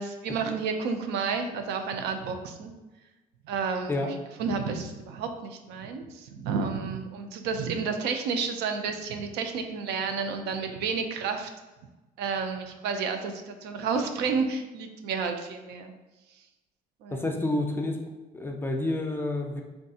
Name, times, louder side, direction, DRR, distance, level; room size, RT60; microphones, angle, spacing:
voice 1, 0.0-2.7 3.4-4.1 4.4-11.5 12.2-15.9 17.0-17.2, right 5 dB, 80° right, 6 dB, 0.4 m, -31 dB
voice 2, 17.1-18.0 18.3-19.6, left 2 dB, 15° left, 2 dB, 0.4 m, -29 dB
3.5 x 2.7 x 2.3 m, 1.1 s
cardioid pair, 110°, 17 cm